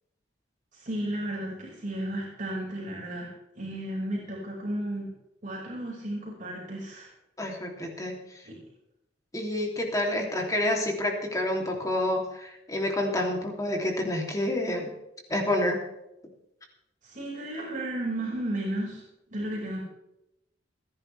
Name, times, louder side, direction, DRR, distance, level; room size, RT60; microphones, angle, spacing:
voice 1, 0.7-5.1 5.4-7.1 8.5-8.6 10.4-10.5 17.0-19.0 19.3-19.8, right 1 dB, 45° right, -4 dB, 5.4 m, -33 dB
voice 2, 7.4-8.2 9.3-14.9 15.3-15.8, left 1 dB, 20° left, 0 dB, 3.0 m, -28 dB
29.0 x 10.5 x 3.4 m, 0.85 s
head